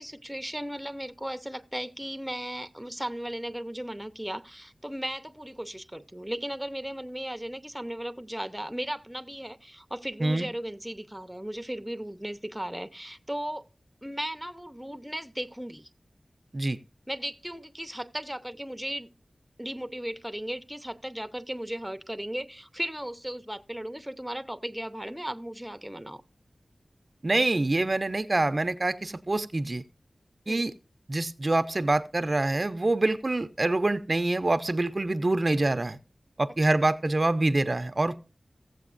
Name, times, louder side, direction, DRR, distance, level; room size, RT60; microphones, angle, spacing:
voice 1, 0.0-13.7 14.0-15.9 17.1-19.1 19.6-26.2 30.5-30.7, right 1 dB, 5° right, 0.7 m, -36 dB
voice 2, 27.2-29.8 30.5-30.7 31.1-36.0 36.4-38.2, right 2 dB, 45° right, 0.5 m, -25 dB
16.0 x 7.7 x 2.5 m
wide cardioid pair, 50°, 0 cm